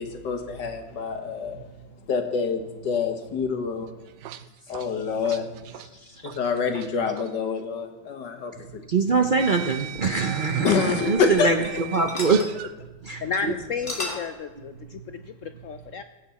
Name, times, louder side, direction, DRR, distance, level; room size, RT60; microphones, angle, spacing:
voice 1, 0.0-1.6 2.1-3.9 4.7-5.5 6.2-8.8 10.6-11.8, left 5 dB, 85° left, 5 dB, 2.0 m, -26 dB
sound 1, 3.9-6.9 7.2-7.4 8.5-8.6 9.4-12.7, right 12 dB, 80° right, 1.2 m, -39 dB
voice 2, 8.9-11.6 11.9-12.4 13.0-13.2, right 4 dB, 65° right, 4 dB, 0.5 m, -23 dB
sound 2, 9.9-11.7 11.9-12.5 12.9-13.0 13.3-13.4 13.7-14.4, left 2 dB, 20° left, 1.2 m, -35 dB
voice 3, 13.2-16.0, left 5 dB, 70° left, 9 dB, 0.8 m, -32 dB
21.0 x 8.4 x 4.2 m, 1.1 s
omnidirectional pair, 1.8 m